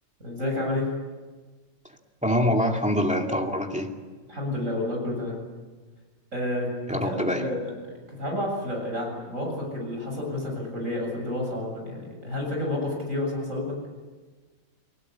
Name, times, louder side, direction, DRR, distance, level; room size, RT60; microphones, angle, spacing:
voice 1, 0.2-0.9 4.3-5.4 6.3-7.7 8.2-13.8, left 1 dB, 70° right, 0 dB, 7.9 m, -30 dB
voice 2, 2.2-3.9 6.9-7.5, equal, 5° right, 2 dB, 2.4 m, -25 dB
30.0 x 20.0 x 8.5 m, 1.4 s
omnidirectional pair, 1.4 m